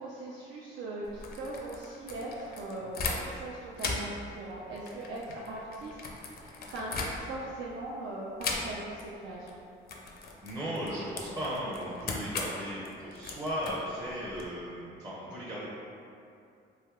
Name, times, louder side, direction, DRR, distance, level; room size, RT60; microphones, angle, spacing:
voice 1, 0.0-9.6, right 2 dB, 80° right, -5 dB, 0.4 m, -40 dB
sound 1, 1.0-3.5 3.7-7.6 8.4-9.1 9.3-9.5 9.9-14.5, left 3 dB, 50° left, 0.4 m, -38 dB
voice 2, 10.4-15.7, equal, 20° right, -8 dB, 0.5 m, -36 dB
3.3 x 2.7 x 2.3 m, 2.5 s
cardioid pair, 90°, 20 cm